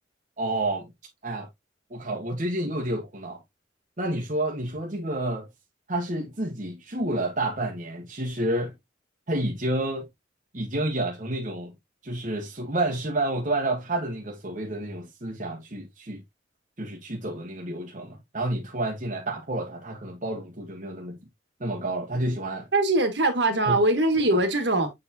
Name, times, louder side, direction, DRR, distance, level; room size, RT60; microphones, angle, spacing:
voice 1, 0.4-0.9 1.2-1.5 1.9-3.4 4.0-5.5 5.9-8.7 9.3-10.1 10.5-11.7 12.0-16.2 16.8-21.2 21.6-22.7 23.7-23.8 24.3-24.4, right 1 dB, 40° right, 1.3 m, -29 dB
voice 2, 22.7-24.9, right 2 dB, 60° right, 1.7 m, -22 dB
7.5 x 4.7 x 2.7 m
head